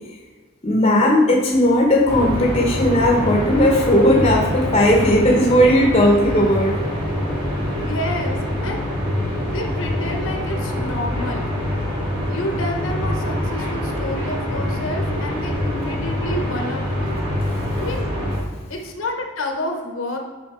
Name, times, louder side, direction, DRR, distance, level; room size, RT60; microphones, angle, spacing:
voice 1, 0.6-6.8, left 1 dB, 30° left, -1 dB, 0.9 m, -16 dB
sound 1, 2.1-18.4, left 1 dB, 25° right, 1.7 m, -25 dB
voice 2, 7.7-8.9 9.5-11.5 12.3-17.2 17.8-18.1 18.7-20.2, left 1 dB, 70° left, 2 dB, 1.0 m, -29 dB
5.9 x 5.3 x 4.8 m, 1.4 s
head